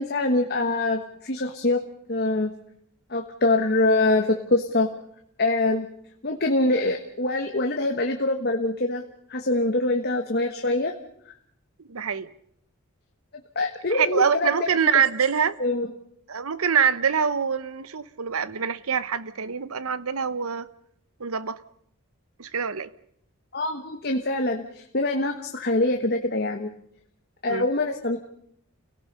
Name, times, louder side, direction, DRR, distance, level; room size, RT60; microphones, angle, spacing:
voice 1, 0.0-1.8 2.1-2.5 3.1-4.9 5.4-5.9 6.2-9.0 9.3-10.9 13.5-14.5 15.6-15.9 23.5-26.7 27.4-28.2, left 2 dB, 45° left, 1.3 m, -24 dB
voice 2, 11.9-12.3 13.9-15.6 16.3-20.7 21.2-21.6 22.4-22.9 27.5-27.7, right 7 dB, 75° right, 0.9 m, -25 dB
29.5 x 17.5 x 5.4 m
head